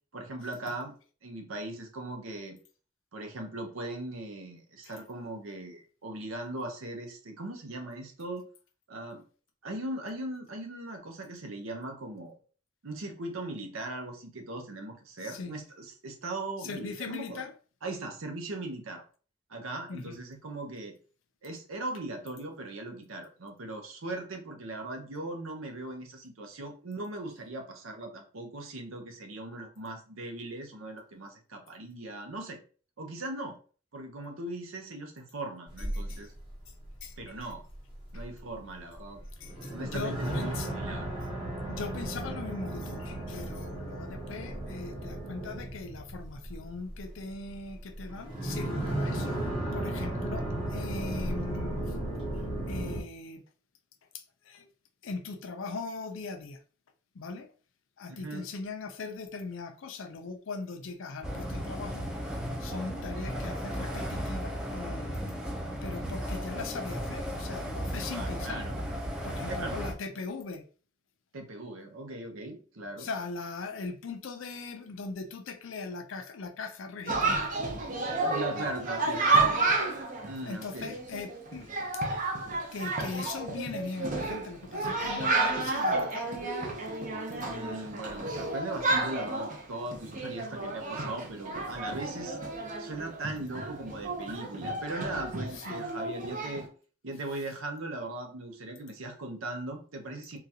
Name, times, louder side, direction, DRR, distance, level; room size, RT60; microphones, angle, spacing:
voice 1, 0.1-0.9 1.2-2.6 3.1-8.4 8.9-9.2 9.6-12.4 12.8-17.4 17.8-19.0 19.5-20.9 21.4-32.6 33.0-33.6 33.9-36.3 37.2-37.6 38.1-39.2 39.7-41.1 58.1-58.5 68.1-68.8 69.5-69.8 71.3-73.1 78.2-79.7 80.3-81.0 87.5-92.4 92.8-96.7 97.0-100.4, right 2 dB, 80° right, 0.8 m, -39 dB
voice 2, 15.2-15.6 16.6-17.5 19.9-20.2 35.9-36.2 37.0-37.1 38.1-38.2 39.4-40.7 41.7-49.4 49.7-52.0 52.7-53.4 54.1-54.7 55.0-56.6 57.1-57.5 58.0-62.1 62.6-65.3 65.8-68.7 69.2-70.6 73.0-77.6 80.4-81.7 82.7-86.5 95.5-96.0, left 4 dB, 70° left, 0.5 m, -40 dB
sound 1, 35.7-53.0, right 1 dB, 25° right, 1.5 m, -35 dB
sound 2, 61.2-69.9, equal, 5° right, 0.5 m, -35 dB
Chatter, 77.1-96.7, right 3 dB, 40° right, 0.7 m, -31 dB
3.8 x 2.3 x 2.8 m
head